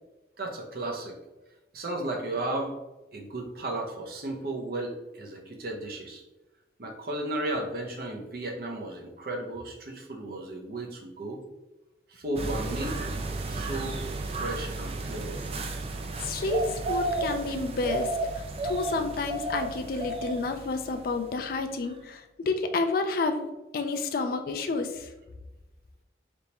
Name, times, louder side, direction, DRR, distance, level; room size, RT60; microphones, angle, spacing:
voice 1, 0.4-1.2 1.7-2.7 3.1-6.2 6.8-11.4 12.1-13.0 13.5-15.5, right 2 dB, 55° right, 2 dB, 0.7 m, -34 dB
sound 1, 12.4-21.6 21.9-22.0, right 2 dB, 35° right, 0.4 m, -33 dB
voice 2, 16.2-25.1, left 3 dB, 50° left, 6 dB, 0.4 m, -30 dB
4.0 x 3.5 x 2.9 m, 1.1 s
head